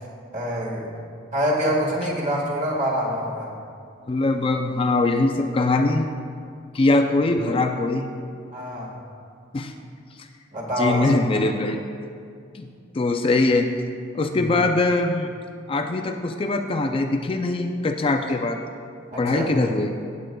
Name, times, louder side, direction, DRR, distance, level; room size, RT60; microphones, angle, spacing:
voice 1, 0.3-0.9 1.3-3.5 8.5-8.9 10.5-11.1 14.2-14.5 19.1-19.5, equal, 40° right, -2 dB, 1.7 m, -25 dB
voice 2, 4.1-6.1 6.7-8.1 9.5-9.7 10.2-10.3 10.8-11.8 12.5-12.7 12.9-13.7 14.1-15.3 15.7-18.6 19.2-19.9, left 2 dB, 30° left, 5 dB, 0.4 m, -22 dB
16.5 x 7.9 x 2.3 m, 2.3 s
head